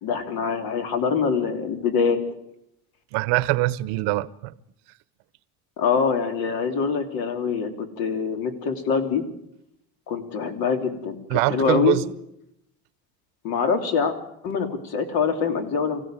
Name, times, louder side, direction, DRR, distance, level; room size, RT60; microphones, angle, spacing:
voice 1, 0.0-2.2 5.8-9.2 10.1-12.0 13.4-14.1 14.4-16.0, left 5 dB, 60° left, 3.1 m, -24 dB
voice 2, 3.1-4.5 11.3-12.0, right 19 dB, 85° right, 1.0 m, -23 dB
24.5 x 16.0 x 9.0 m
cardioid pair, 155°, 40 cm